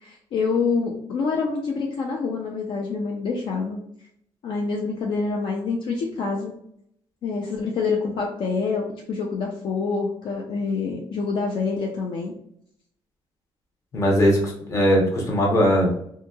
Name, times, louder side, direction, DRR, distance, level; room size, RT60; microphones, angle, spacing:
voice 1, 0.0-3.8 4.4-6.5 7.2-12.3, left 4 dB, 55° left, 0 dB, 0.5 m, -26 dB
voice 2, 13.9-15.9, equal, 30° left, -1 dB, 0.8 m, -19 dB
2.8 x 2.7 x 2.2 m, 0.70 s
cardioid pair, 145°, 10 cm